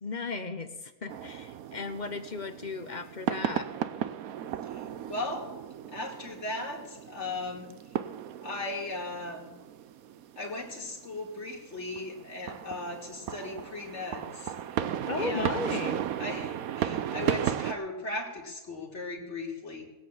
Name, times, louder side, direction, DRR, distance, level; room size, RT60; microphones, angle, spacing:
voice 1, 0.0-3.7 15.1-16.0, left 3 dB, 35° left, 9 dB, 0.9 m, -35 dB
sound 1, 1.1-17.7, right 10 dB, 90° right, 1.2 m, -35 dB
voice 2, 4.6-5.5 5.9-7.7 8.4-9.5 10.4-14.8 15.1-15.7 16.2-19.8, left 2 dB, 55° left, 1 dB, 2.7 m, -37 dB
19.0 x 8.3 x 7.2 m, 1.0 s
omnidirectional pair, 1.5 m